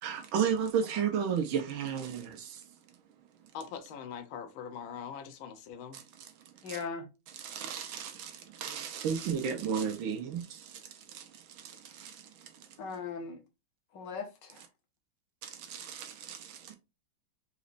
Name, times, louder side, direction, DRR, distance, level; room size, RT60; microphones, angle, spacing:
voice 1, 0.0-2.7 5.9-6.8 7.3-12.8 14.6-14.7 15.4-16.8, right 7 dB, 80° right, 1.6 m, -34 dB
voice 2, 3.5-6.0, left 7 dB, 85° left, 1.6 m, -42 dB
voice 3, 6.6-7.0 12.8-13.4 13.9-14.5, left 5 dB, 65° left, 1.6 m, -38 dB
4.1 x 4.1 x 2.5 m
omnidirectional pair, 2.2 m